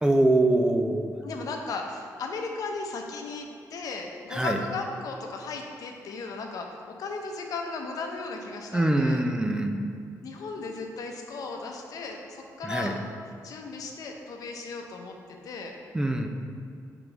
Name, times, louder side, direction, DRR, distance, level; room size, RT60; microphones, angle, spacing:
voice 1, 0.0-1.1 4.3-4.6 8.7-9.8 12.6-12.9 15.9-16.3, right 1 dB, 10° right, 4 dB, 0.3 m, -23 dB
voice 2, 1.2-9.2 10.2-13.0 13.4-15.7, left 3 dB, 65° left, 2 dB, 0.7 m, -36 dB
5.9 x 4.6 x 3.9 m, 2.2 s
cardioid pair, 125°, 7 cm